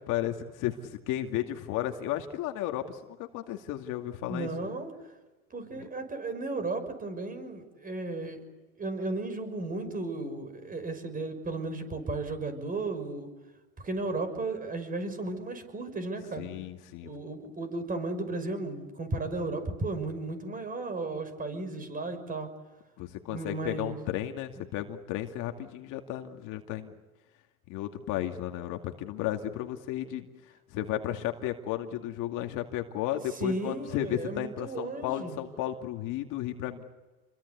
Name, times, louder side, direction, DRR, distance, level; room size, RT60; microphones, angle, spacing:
voice 1, 0.1-4.5 5.8-5.9 16.4-17.1 23.0-26.9 27.7-30.3 30.7-36.8, left 12 dB, 45° left, 5 dB, 2.4 m, -34 dB
voice 2, 4.3-4.9 5.5-8.4 8.8-13.3 13.8-16.5 17.0-22.5 23.3-24.0 30.7-30.9 33.3-35.4, right 2 dB, 20° right, 10 dB, 6.0 m, -34 dB
29.0 x 23.0 x 8.4 m, 1.1 s
hypercardioid pair, 115°, 43 cm